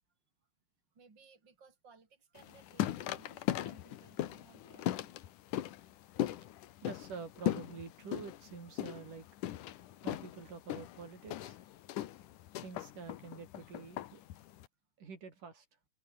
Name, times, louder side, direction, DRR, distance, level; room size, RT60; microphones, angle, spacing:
voice 1, 1.0-5.2, right 4 dB, 35° right, 5.2 m, -61 dB
sound 1, 2.4-14.7, left 13 dB, 80° left, 2.7 m, -39 dB
voice 2, 6.8-9.3 10.0-11.6 12.6-14.2 15.0-15.7, right 5 dB, 80° right, 6.5 m, -47 dB
omnidirectional pair, 3.6 m